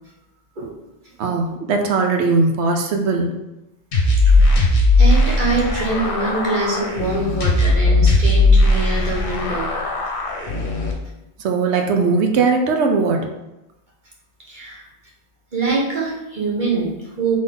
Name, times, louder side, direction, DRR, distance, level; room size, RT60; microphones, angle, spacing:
voice 1, 1.2-3.3 11.4-13.2, right 4 dB, 75° right, 3 dB, 0.9 m, -19 dB
sound 1, 3.9-10.9, left 2 dB, 55° left, 1.1 m, -17 dB
voice 2, 4.2-9.7 14.5-14.8 15.5-17.4, right 3 dB, 45° right, -5 dB, 1.2 m, -24 dB
3.9 x 3.5 x 3.8 m, 0.96 s
omnidirectional pair, 1.2 m